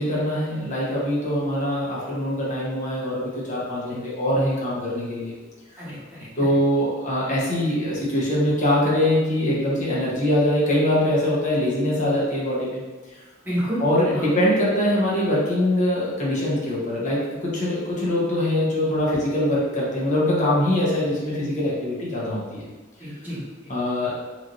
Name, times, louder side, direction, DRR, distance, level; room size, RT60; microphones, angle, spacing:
voice 1, 0.0-5.3 6.4-12.8 13.1-13.2 13.8-22.6 23.7-24.3, left 1 dB, 40° left, -6 dB, 0.9 m, -23 dB
voice 2, 5.8-6.6 13.4-13.9 14.1-14.4 23.0-23.7, equal, 10° right, -11 dB, 1.0 m, -31 dB
3.0 x 2.5 x 2.5 m, 1.3 s
head